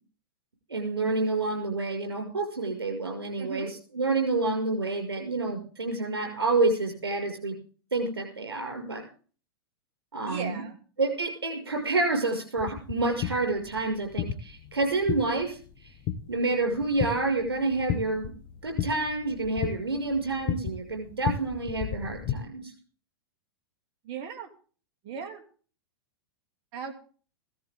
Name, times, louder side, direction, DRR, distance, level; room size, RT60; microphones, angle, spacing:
voice 1, 0.7-7.5 7.9-9.0 10.1-10.6 11.0-15.6 16.3-18.3 18.6-22.7, right 3 dB, 85° right, 3 dB, 5.7 m, -28 dB
voice 2, 3.4-3.7 10.3-10.8 24.0-24.5 25.0-25.4 26.7-26.9, right 6 dB, 45° right, 5 dB, 2.7 m, -37 dB
sound 1, 12.6-22.4, left 9 dB, 45° left, 1.2 m, -35 dB
16.5 x 13.5 x 3.6 m, 0.40 s
hypercardioid pair, 105°, 13 cm